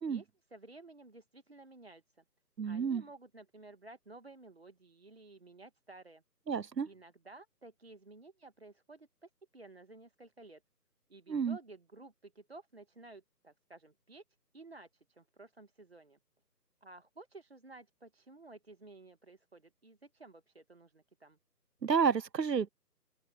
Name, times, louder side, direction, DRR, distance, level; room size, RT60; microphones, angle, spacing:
voice 1, 0.1-2.2 2.6-6.2 6.8-10.6 11.1-14.2 14.5-16.2 16.8-21.4, right 2 dB, 40° right, 1.7 m, -54 dB
voice 2, 2.6-3.0 6.5-6.9 11.3-11.6 21.8-22.7, right 6 dB, 80° right, 0.8 m, -30 dB
open air
figure-of-eight pair, 160°, 49 cm